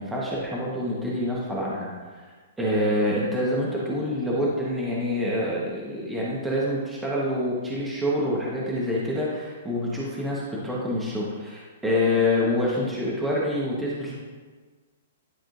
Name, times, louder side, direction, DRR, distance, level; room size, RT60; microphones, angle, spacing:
voice 1, 0.0-1.9 2.6-14.1, left 1 dB, 10° right, -6 dB, 1.1 m, -26 dB
10.5 x 3.7 x 2.5 m, 1.4 s
hypercardioid pair, 155°, 0 cm